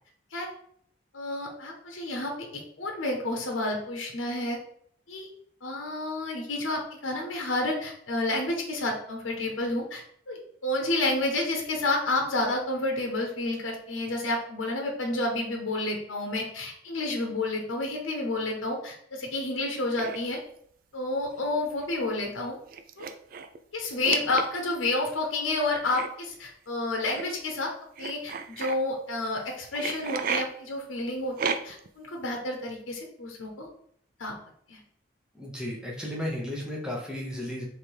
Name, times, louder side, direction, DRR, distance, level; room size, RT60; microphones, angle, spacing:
voice 1, 1.1-4.6 5.1-5.3 5.6-20.4 20.9-22.6 23.0-23.1 23.7-27.7 28.0-33.7 34.2-34.3 34.7-34.8, left 2 dB, 85° left, 1 dB, 0.8 m, -30 dB
sound 1, 19.9-20.2 21.3-21.5 21.8-21.9 22.7-23.6 24.0-24.8 25.9-26.1 27.1-27.2 28.0-28.7 29.7-30.4 31.4-31.9, right 6 dB, 45° right, 0.3 m, -32 dB
voice 2, 35.4-37.7, left 1 dB, 5° right, -2 dB, 0.9 m, -34 dB
3.3 x 3.3 x 4.5 m, 0.65 s
head